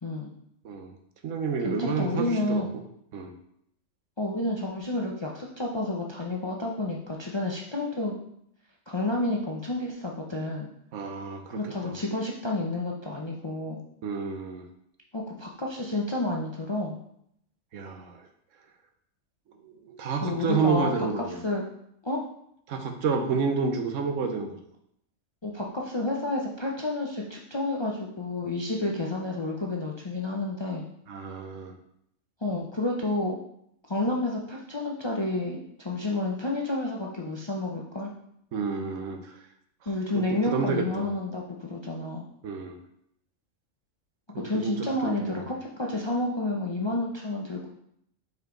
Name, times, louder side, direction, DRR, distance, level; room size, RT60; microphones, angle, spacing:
voice 1, 0.0-0.3 1.6-2.7 4.2-8.1 8.9-10.7 11.5-13.8 15.1-17.0 20.2-21.6 22.0-22.2 25.4-30.8 32.4-33.4 33.9-38.1 39.9-42.3 44.3-47.7, left 2 dB, 30° left, -1 dB, 0.5 m, -30 dB
voice 2, 1.2-2.7 3.1-3.3 10.9-11.9 14.0-14.6 17.7-18.2 19.6-21.4 22.7-24.6 31.1-31.7 38.5-39.3 40.5-41.1 42.4-42.8 44.3-44.7 45.0-45.4, right 5 dB, 75° right, 6 dB, 1.1 m, -29 dB
5.5 x 4.6 x 3.8 m, 0.72 s
omnidirectional pair, 1.3 m